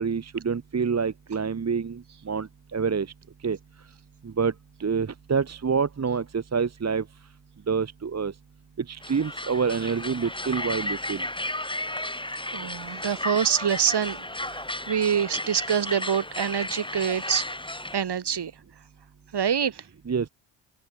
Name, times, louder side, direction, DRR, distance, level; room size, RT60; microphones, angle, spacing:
voice 1, 0.0-3.1 3.4-3.6 4.2-4.5 4.8-7.0 7.7-8.3 8.8-11.3 20.1-20.3, right 5 dB, 30° right, 1.7 m, -27 dB
sound 1, 9.0-18.0, left 1 dB, 10° left, 6.6 m, -34 dB
voice 2, 12.5-14.2 14.5-14.6 14.9-17.4 17.9-18.5 19.3-19.8, right 8 dB, 55° right, 5.5 m, -25 dB
supercardioid pair, 65°, 49 cm